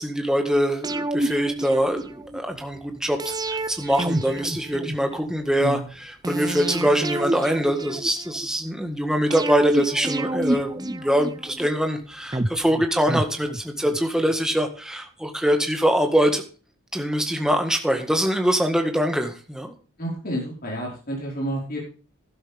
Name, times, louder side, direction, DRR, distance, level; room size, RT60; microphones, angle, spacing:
voice 1, 0.0-16.4 16.9-19.7, equal, 5° right, 4 dB, 1.7 m, -23 dB
sound 1, 0.8-2.4 3.2-5.3 6.2-8.5 9.3-11.7 12.3-14.0 14.3-14.4, right 1 dB, 20° right, 0.6 m, -29 dB
voice 2, 20.0-21.8, right 1 dB, 40° left, -3 dB, 4.9 m, -30 dB
12.5 x 12.0 x 3.5 m, 0.36 s
head